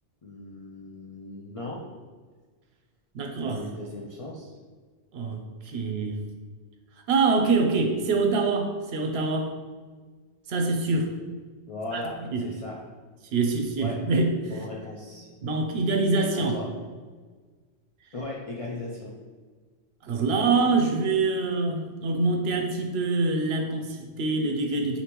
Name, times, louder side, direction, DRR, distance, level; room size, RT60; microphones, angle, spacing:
voice 1, 0.2-1.8 3.4-4.6 11.7-12.8 13.8-14.0 14.5-15.3 16.3-16.7 18.1-19.1, left 2 dB, 50° left, -4 dB, 0.4 m, -37 dB
voice 2, 3.1-3.6 5.1-6.2 7.1-9.5 10.5-11.1 11.9-12.0 12.3-12.5 13.3-14.5 15.4-16.6 20.0-25.0, right 3 dB, 70° right, 4 dB, 0.8 m, -25 dB
5.1 x 2.7 x 2.9 m, 1.4 s
omnidirectional pair, 1.1 m